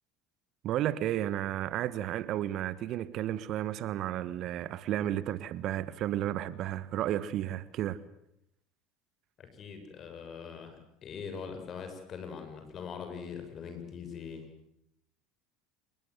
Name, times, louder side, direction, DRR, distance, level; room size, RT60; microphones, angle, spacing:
voice 1, 0.6-8.0, right 12 dB, 50° right, 1.4 m, -32 dB
voice 2, 9.4-14.4, left 6 dB, 40° left, 7.2 m, -42 dB
26.5 x 22.0 x 8.0 m
hypercardioid pair, 75°, 0 cm